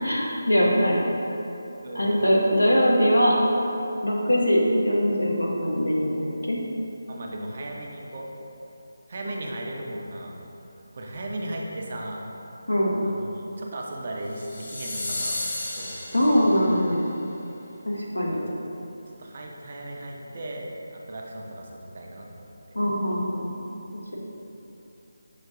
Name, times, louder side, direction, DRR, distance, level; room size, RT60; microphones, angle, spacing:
voice 1, 0.0-1.0 1.9-3.4 4.0-6.6 12.7-12.9 16.1-17.1 17.9-18.4 22.7-23.5, equal, 85° left, -3 dB, 0.8 m, -22 dB
voice 2, 1.8-2.2 7.1-8.3 9.1-10.3 10.9-12.2 13.0-15.5 15.8-16.3 16.6-16.7 18.2-18.4 19.1-22.5, right 1 dB, 45° right, -1 dB, 0.5 m, -36 dB
sound 1, 14.3-16.8, left 2 dB, 45° left, 0.8 m, -33 dB
5.6 x 2.6 x 3.6 m, 2.9 s
figure-of-eight pair, 155°, 0 cm